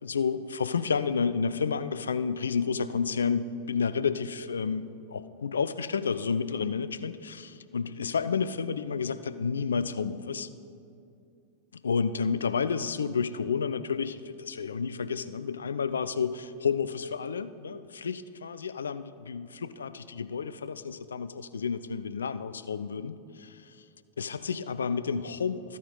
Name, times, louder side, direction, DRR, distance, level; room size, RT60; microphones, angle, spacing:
voice 1, 0.0-10.5 11.8-23.6 24.2-25.8, left 5 dB, 70° left, 13 dB, 0.4 m, -30 dB
13.5 x 9.2 x 3.7 m, 2.6 s
figure-of-eight pair, 90°, 0 cm